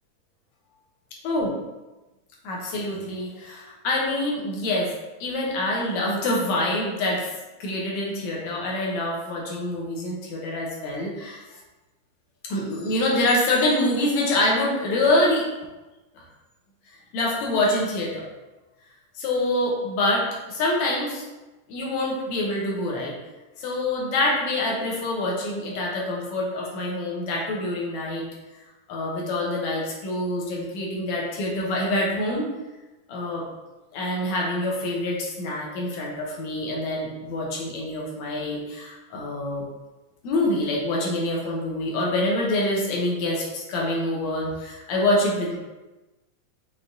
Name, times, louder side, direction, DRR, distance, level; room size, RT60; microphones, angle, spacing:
voice 1, 2.4-4.9 5.2-7.3 7.6-11.4 12.4-15.4 17.1-18.3 19.2-21.3 21.7-23.1 23.6-28.3 28.9-32.5 33.1-33.4 33.9-39.6 40.2-45.6, left 1 dB, 75° left, -3 dB, 2.1 m, -26 dB
5.8 x 3.4 x 2.6 m, 1.1 s
omnidirectional pair, 3.5 m